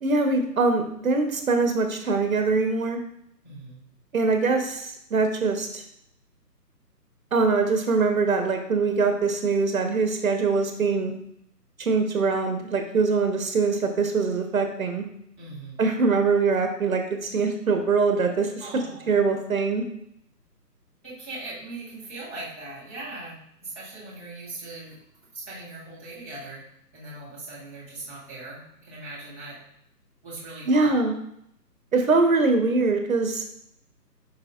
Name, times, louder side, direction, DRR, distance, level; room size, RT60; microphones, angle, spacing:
voice 1, 0.0-3.0 4.1-5.8 7.3-11.1 11.8-15.0 15.8-18.5 19.1-19.8 30.7-31.1 31.9-33.4, right 4 dB, 55° right, 5 dB, 1.0 m, -23 dB
voice 2, 3.4-3.8 15.4-15.8 18.6-19.2 21.0-25.0 25.3-26.6 26.9-29.6 30.2-31.0, right 2 dB, 10° left, -12 dB, 0.6 m, -40 dB
7.9 x 5.4 x 2.4 m, 0.75 s
figure-of-eight pair, 155°, 49 cm